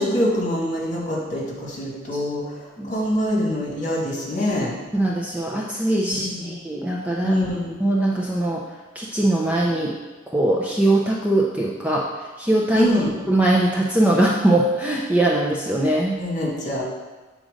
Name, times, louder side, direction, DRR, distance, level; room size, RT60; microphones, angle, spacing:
voice 1, 0.0-2.4 2.9-4.7 6.1-6.5 7.2-7.7 12.8-13.1 16.2-16.8, left 1 dB, 40° left, -4 dB, 1.9 m, -24 dB
voice 2, 4.9-7.4 7.8-8.6 9.0-9.9 10.3-12.0 12.4-12.9 13.3-16.2, right 1 dB, 5° right, -3 dB, 0.5 m, -21 dB
7.5 x 3.9 x 5.0 m, 1.2 s
head